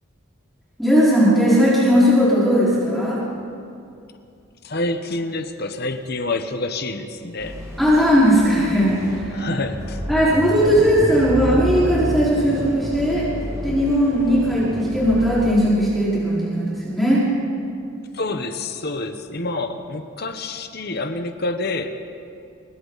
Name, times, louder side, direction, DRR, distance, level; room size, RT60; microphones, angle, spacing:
voice 1, 0.8-3.2 7.8-9.4 10.1-13.3 13.6-17.2, equal, ahead, -10 dB, 4.8 m, -18 dB
voice 2, 4.6-7.6 9.3-10.0 18.1-22.0, left 2 dB, 50° left, 7 dB, 1.1 m, -27 dB
sound 1, 7.4-15.5, equal, 15° right, 6.4 m, -29 dB
28.0 x 23.5 x 4.1 m, 2.6 s
head